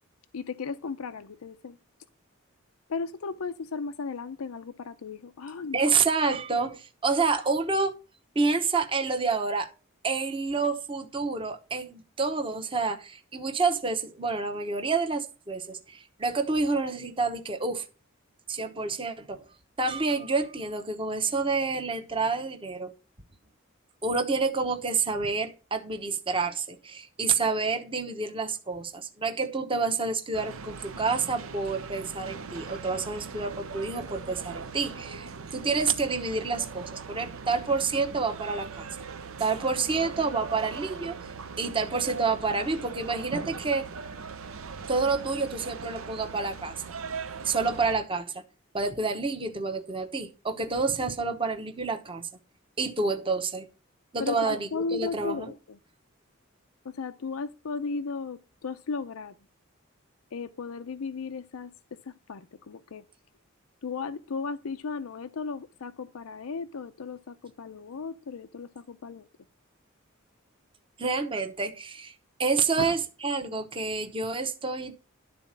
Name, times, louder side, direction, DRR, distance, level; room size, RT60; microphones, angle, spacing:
voice 1, 0.3-1.8 2.9-5.8 54.2-55.8 56.8-59.3 60.3-61.7 62.1-63.0 63.8-69.2 72.8-73.0, left 4 dB, 90° left, 0.5 m, -35 dB
voice 2, 5.7-8.0 8.3-9.7 10.0-17.9 18.5-19.4 19.8-22.9 24.0-38.9 39.4-41.3 41.6-43.8 44.9-46.7 47.4-48.4 48.7-52.3 52.8-53.7 54.1-55.5 71.0-72.1 72.4-74.9, right 4 dB, 25° right, 1.0 m, -28 dB
sound 1, 30.3-47.9, right 5 dB, 80° right, 0.8 m, -40 dB
12.0 x 4.1 x 7.3 m
head